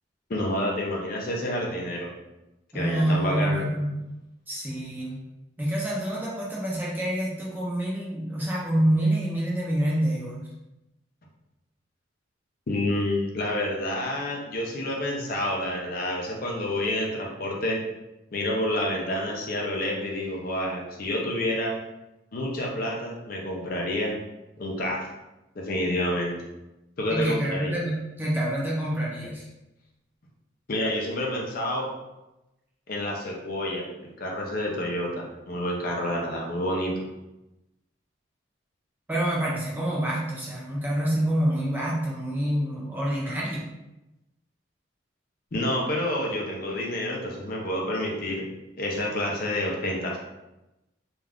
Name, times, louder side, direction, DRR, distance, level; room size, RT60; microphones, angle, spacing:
voice 1, 0.3-2.1 2.7-3.6 12.7-17.8 18.3-21.8 22.3-24.1 24.6-25.0 25.6-26.4 27.0-27.7 30.7-31.9 32.9-36.9 45.5-48.4 48.8-50.2, left 1 dB, 45° left, -1 dB, 0.5 m, -28 dB
voice 2, 2.7-4.1 4.5-5.2 5.6-10.5 27.1-29.5 39.1-43.6, right 1 dB, 10° right, -6 dB, 0.5 m, -27 dB
2.4 x 2.4 x 3.3 m, 0.96 s
head